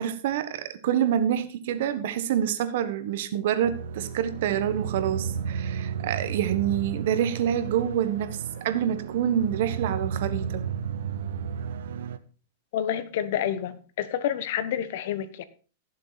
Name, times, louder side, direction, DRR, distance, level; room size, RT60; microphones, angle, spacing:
voice 1, 0.0-10.7, right 10 dB, 65° right, 11 dB, 1.5 m, -27 dB
sound 1, 3.6-12.2, right 7 dB, 80° right, 1.0 m, -33 dB
voice 2, 12.7-15.4, left 10 dB, 65° left, 14 dB, 1.3 m, -29 dB
16.5 x 7.2 x 4.2 m, 0.37 s
supercardioid pair, 145°, 0 cm